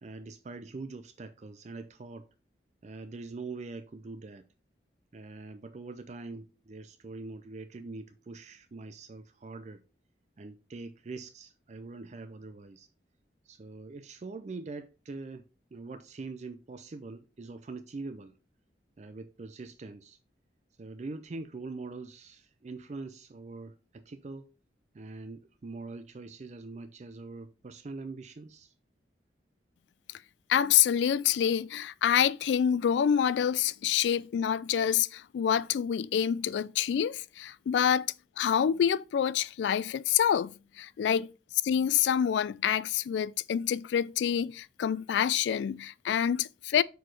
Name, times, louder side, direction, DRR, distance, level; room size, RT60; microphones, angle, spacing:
voice 1, 0.0-2.3 2.8-4.4 5.1-9.8 10.4-12.9 13.5-15.4 15.7-18.3 19.0-20.2 20.8-24.5 24.9-28.7, right 3 dB, 40° right, 0.4 m, -43 dB
voice 2, 30.5-38.1 38.4-41.3 41.6-46.8, left 9 dB, 85° left, 0.3 m, -27 dB
6.1 x 4.6 x 4.6 m
head